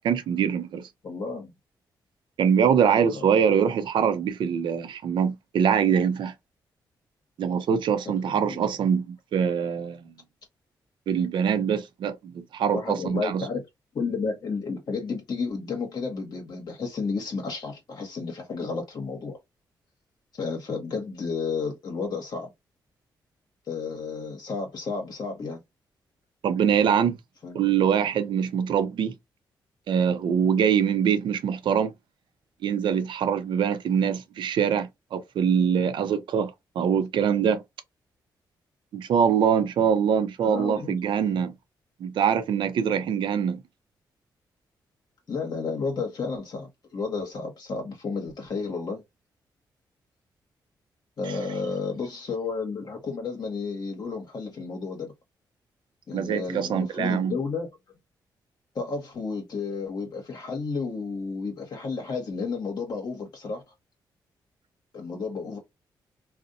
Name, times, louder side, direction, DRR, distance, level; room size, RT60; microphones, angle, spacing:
voice 1, 0.0-0.9 2.4-6.3 7.4-10.1 11.1-13.5 26.4-27.2 27.5-29.1 29.9-31.9 32.6-37.6 38.9-41.5 42.0-43.6 56.1-57.3, right 7 dB, 75° right, 0.5 m, -24 dB
voice 2, 1.0-1.5 2.9-3.3 8.1-8.6 12.7-13.6 13.9-19.4 20.3-22.5 23.7-25.6 27.4-27.7 40.4-41.0 45.3-49.0 51.2-55.1 56.1-57.7 58.7-63.6 64.9-65.6, left 4 dB, 55° left, 0.8 m, -32 dB
2.6 x 2.0 x 2.5 m
cardioid pair, 75°, 8 cm